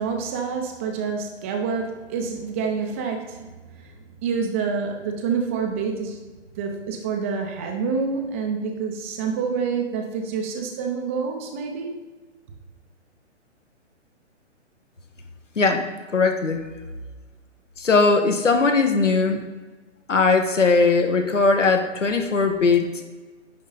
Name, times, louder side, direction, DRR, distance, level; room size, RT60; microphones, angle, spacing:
voice 1, 0.0-3.5 3.7-3.9 4.2-6.2 6.6-11.9, right 5 dB, 10° right, 3 dB, 0.4 m, -27 dB
voice 2, 16.1-16.6 17.8-19.4 20.1-23.0, left 4 dB, 85° left, 5 dB, 1.3 m, -19 dB
10.5 x 3.7 x 4.0 m, 1.3 s
figure-of-eight pair, 130°, 36 cm